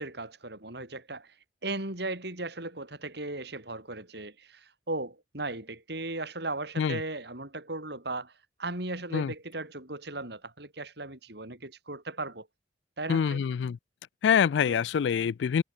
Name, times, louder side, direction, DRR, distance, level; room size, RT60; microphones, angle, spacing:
voice 1, 0.0-1.3 1.6-8.3 8.6-12.5 13.0-13.4 14.6-14.8, right 2 dB, 65° right, 6.8 m, -37 dB
voice 2, 13.1-13.8 14.2-15.6, left 7 dB, 75° left, 0.3 m, -25 dB
head